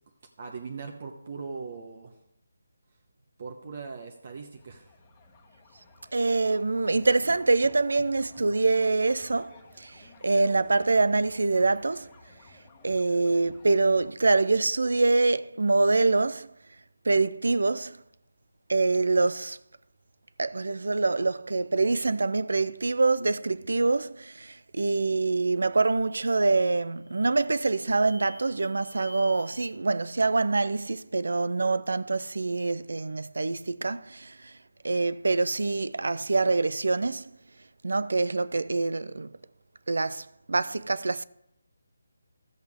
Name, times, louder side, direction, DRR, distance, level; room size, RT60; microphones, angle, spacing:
voice 1, 0.4-2.1 3.4-4.9, right 4 dB, 45° right, 1.0 m, -39 dB
sound 1, 4.5-14.1, left 2 dB, 25° left, 1.3 m, -54 dB
voice 2, 6.1-12.1 12.8-16.5 17.0-18.0 18.7-19.6 20.4-34.5 34.8-37.3 37.8-39.3 39.9-41.2, right 3 dB, 75° right, 0.4 m, -25 dB
sound 2, 25.3-25.6 26.0-26.5 27.0-29.7, left 2 dB, 50° left, 1.5 m, -52 dB
13.5 x 8.0 x 3.6 m
figure-of-eight pair, 165°, 0 cm